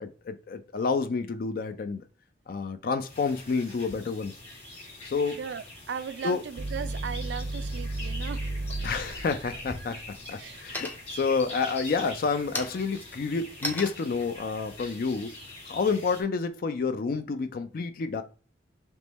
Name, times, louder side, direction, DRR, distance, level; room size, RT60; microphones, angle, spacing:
voice 1, 0.0-2.0 2.5-4.3 5.0-5.4 6.2-6.4 8.8-10.0 10.3-15.3 15.7-18.2, left 4 dB, 50° left, 0.4 m, -29 dB
sound 1, 3.1-16.2, left 1 dB, 35° left, 1.7 m, -44 dB
voice 2, 5.4-8.5 10.4-10.7, right 7 dB, 70° right, 0.3 m, -37 dB
sound 2, 6.6-13.8 14.3-15.0, right 2 dB, 85° right, 0.7 m, -36 dB
sound 3, 10.7-11.3 11.8-16.2, left 1 dB, 10° left, 0.7 m, -39 dB
3.6 x 3.0 x 3.9 m
head